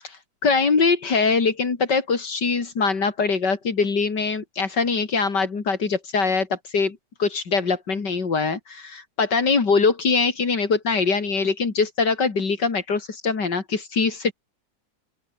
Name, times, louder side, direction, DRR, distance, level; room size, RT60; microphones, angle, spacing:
voice 1, 0.4-14.3, left 4 dB, 80° left, 3.5 m, -23 dB
open air
omnidirectional pair, 1.8 m